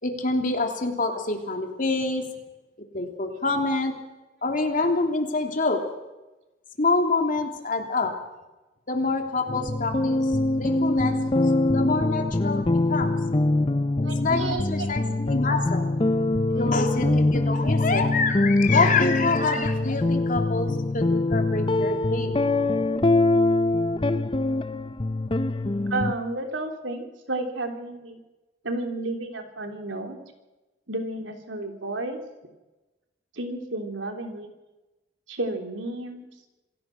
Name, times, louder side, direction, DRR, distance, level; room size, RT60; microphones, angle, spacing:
voice 1, 0.0-2.2 2.9-3.9 4.4-5.8 6.8-8.1 8.9-10.2 10.6-11.2 11.7-13.1 14.2-15.9 16.5-22.4, left 3 dB, 45° left, 4 dB, 3.1 m, -26 dB
sound 1, 9.5-26.1, left 2 dB, 25° left, 0.7 m, -23 dB
voice 2, 14.0-14.9 16.5-16.7 25.9-28.2 28.6-30.2 30.9-32.2 33.3-34.5 35.3-36.3, right 2 dB, 85° right, 4 dB, 3.4 m, -32 dB
26.5 x 17.0 x 6.0 m, 1.1 s
head